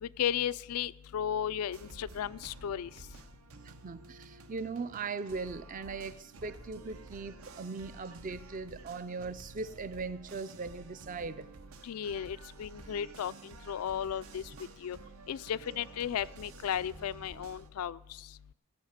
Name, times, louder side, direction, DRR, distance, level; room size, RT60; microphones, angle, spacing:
voice 1, 0.0-2.9 11.8-14.4 14.8-15.0 15.3-18.0, left 9 dB, 85° left, 0.3 m, -35 dB
sound 1, 1.7-17.7, right 3 dB, 80° right, 0.8 m, -51 dB
voice 2, 3.6-11.5, right 4 dB, 35° right, 0.4 m, -39 dB
15.0 x 5.8 x 8.0 m
head